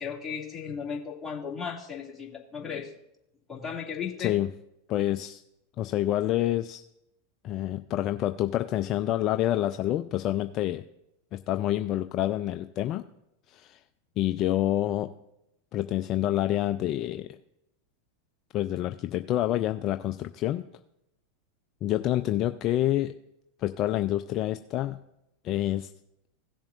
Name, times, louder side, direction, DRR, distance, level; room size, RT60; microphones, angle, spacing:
voice 1, 0.0-2.9 3.5-4.3, left 6 dB, 15° left, -3 dB, 2.4 m, -35 dB
voice 2, 4.9-5.4 5.8-6.8 7.4-10.8 11.3-13.0 13.5-13.8 14.2-15.1 15.7-17.4 18.5-20.6 21.8-23.1 23.6-25.0 25.4-25.9, left 13 dB, 40° left, 9 dB, 0.4 m, -27 dB
17.0 x 7.1 x 2.6 m, 0.84 s
hypercardioid pair, 95°, 0 cm